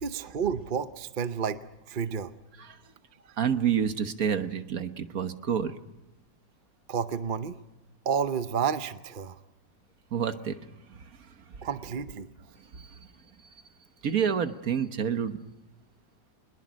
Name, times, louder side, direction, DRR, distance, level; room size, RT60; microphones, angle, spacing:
voice 1, 0.0-2.3 6.9-7.6 8.0-9.4 11.6-12.3, right 7 dB, 40° right, 11 dB, 0.8 m, -30 dB
voice 2, 3.4-5.7 10.1-10.6 10.9-11.0 12.7-12.8 14.0-15.4, right 8 dB, 60° right, 9 dB, 1.6 m, -28 dB
23.0 x 21.5 x 6.3 m, 1.0 s
omnidirectional pair, 1.8 m